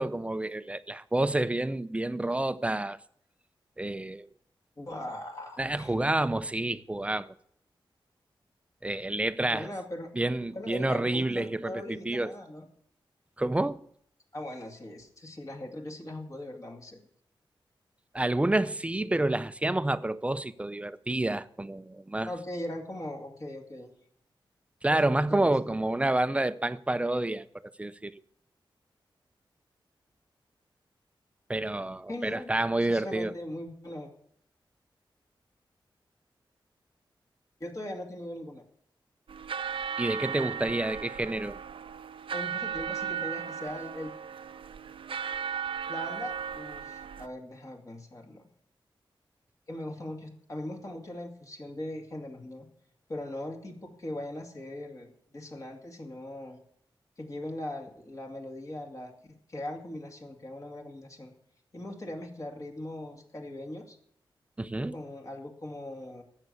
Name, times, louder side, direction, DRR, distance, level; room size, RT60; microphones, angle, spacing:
voice 1, 0.0-3.0 3.8-4.3 5.6-7.3 8.8-9.7 10.2-12.4 13.4-13.8 18.1-22.3 24.8-28.2 31.5-33.3 40.0-41.6 64.6-65.0, right 2 dB, 15° right, 0.6 m, -29 dB
voice 2, 4.8-5.9 9.5-10.1 10.5-12.6 14.3-17.0 22.3-23.9 24.9-25.7 32.1-32.5 32.8-34.1 37.6-38.6 42.3-44.1 45.9-48.5 49.7-52.7 53.1-56.6 57.2-59.1 59.5-61.3 61.7-64.0 64.9-66.2, left 1 dB, 40° left, 2.4 m, -40 dB
sound 1, 39.3-47.3, right 7 dB, 80° right, 0.7 m, -36 dB
13.5 x 8.1 x 8.5 m
wide cardioid pair, 100°, 9 cm